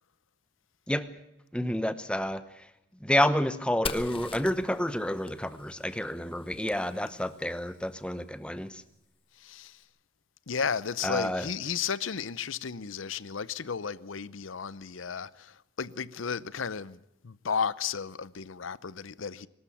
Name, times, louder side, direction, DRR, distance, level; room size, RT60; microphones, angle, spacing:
voice 1, 1.5-2.7 3.0-8.8 11.0-11.5, left 1 dB, 5° left, 0.9 m, -29 dB
Fire, 3.9-7.5, left 5 dB, 25° left, 1.0 m, -42 dB
voice 2, 9.4-9.8 10.5-19.5, left 6 dB, 85° left, 0.7 m, -34 dB
24.0 x 13.0 x 8.5 m
head